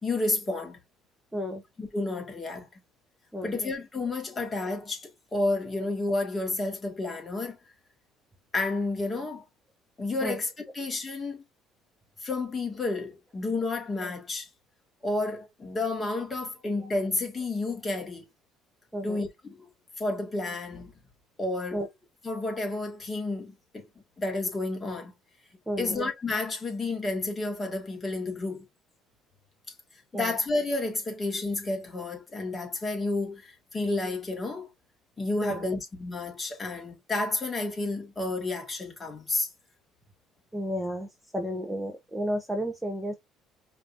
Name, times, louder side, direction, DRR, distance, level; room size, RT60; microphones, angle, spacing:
voice 1, 0.0-0.8 1.8-2.7 3.4-7.6 8.5-9.4 10.0-11.4 12.2-14.5 15.0-18.3 19.0-19.7 20.0-20.9 21.4-21.8 22.2-23.9 24.2-25.1 25.8-28.7 30.1-34.7 35.2-39.5, left 2 dB, 25° left, 2.0 m, -31 dB
voice 2, 3.3-3.7 10.2-10.4 14.0-14.1 18.9-19.2 21.7-21.9 25.7-26.0 30.1-30.3 35.4-35.7 40.5-41.1 41.3-43.1, equal, 5° right, 1.0 m, -32 dB
5.1 x 3.0 x 2.6 m
cardioid pair, 100°, 0 cm